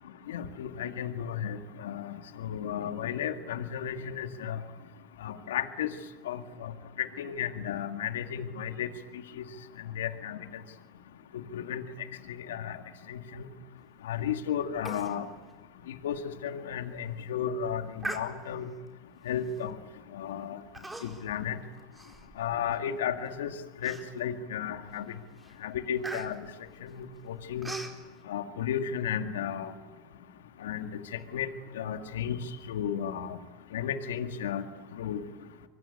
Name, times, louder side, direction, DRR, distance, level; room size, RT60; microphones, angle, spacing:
voice 1, 0.3-4.6 5.2-5.9 6.3-6.7 7.0-8.9 10.0-10.4 11.5-11.8 12.5-12.8 13.1-13.4 14.0-15.3 16.0-18.7 19.3-19.7 20.1-20.6 21.0-21.6 22.4-23.5 23.8-25.1 25.6-26.4 26.8-26.9 27.5-27.7 28.3-29.7 30.6-30.9 31.3-31.5 31.7-32.4 32.7-33.4 33.7-34.6 35.0-35.2, left 8 dB, 80° left, 8 dB, 2.0 m, -33 dB
Human voice, 14.9-15.2 15.5-15.6 16.1-16.2 16.8-17.0 18.0-18.7 19.5-19.7 20.7-21.4 21.7-22.8 23.2-23.3 23.8-24.4 24.9-25.1 25.4-28.0, right 2 dB, 10° right, 4.4 m, -41 dB
25.0 x 23.0 x 9.5 m, 1.3 s
hypercardioid pair, 90°, 0 cm